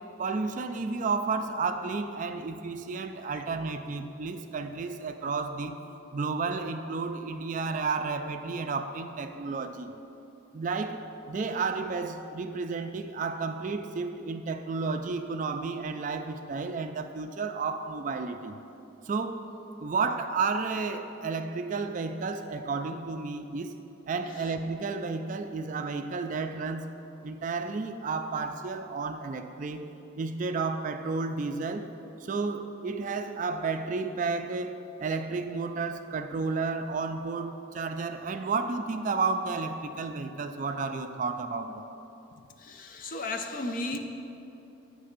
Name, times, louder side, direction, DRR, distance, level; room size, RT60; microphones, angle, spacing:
voice 1, 0.2-5.8 6.1-9.9 10.5-18.6 19.1-19.4 19.8-23.8 24.1-26.9 27.2-29.9 30.2-31.9 32.2-41.9, right 4 dB, 40° right, 7 dB, 0.3 m, -32 dB
voice 2, 42.6-44.0, left 2 dB, 45° left, 5 dB, 0.5 m, -35 dB
9.5 x 3.3 x 6.5 m, 2.9 s
head